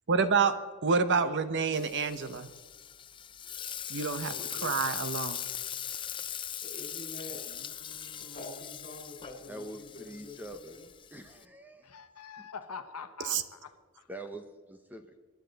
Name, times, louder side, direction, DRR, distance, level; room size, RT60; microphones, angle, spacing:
voice 1, 0.1-0.5 0.8-2.5 3.9-5.5 13.2-13.4, right 5 dB, 55° right, 0.9 m, -28 dB
Frying (food), 1.7-11.4, left 9 dB, 20° left, 0.4 m, -40 dB
voice 2, 4.3-4.7 6.6-7.4 8.2-10.8, left 1 dB, 45° left, 3.7 m, -46 dB
voice 3, 7.5-8.5 11.8-13.7 13.9-14.1, left 5 dB, 90° left, 1.0 m, -46 dB
voice 4, 9.5-10.8 11.1-12.0 12.4-12.5 14.1-15.2, right 1 dB, 10° right, 0.8 m, -45 dB
25.0 x 11.0 x 4.0 m
head